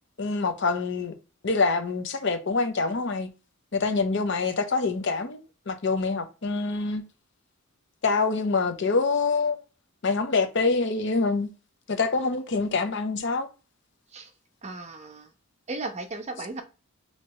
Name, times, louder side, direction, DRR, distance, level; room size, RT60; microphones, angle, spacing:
voice 1, 0.2-1.1 1.4-3.3 3.7-5.4 5.7-7.0 8.0-9.6 10.0-11.5 11.9-13.5, left 4 dB, 55° left, 0.6 m, -25 dB
voice 2, 14.6-15.3 15.7-16.6, right 3 dB, 30° right, 0.5 m, -35 dB
4.5 x 2.8 x 3.0 m
head